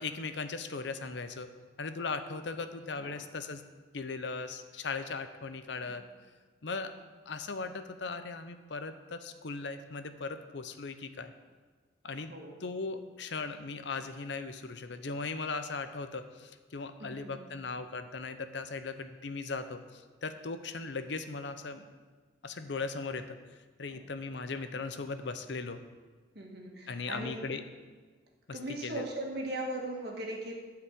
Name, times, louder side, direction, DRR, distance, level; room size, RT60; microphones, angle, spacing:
voice 1, 0.0-1.5 1.8-3.6 3.9-6.0 6.6-6.9 7.3-11.3 12.0-12.3 12.6-21.8 22.4-23.4 23.8-25.8 26.9-27.6 28.5-29.1, left 4 dB, 75° left, 10 dB, 0.7 m, -38 dB
voice 2, 12.2-12.6 17.0-17.4 23.9-24.0 26.3-27.5 28.5-30.5, right 1 dB, 60° right, 0 dB, 1.9 m, -39 dB
12.0 x 4.9 x 8.3 m, 1.4 s
head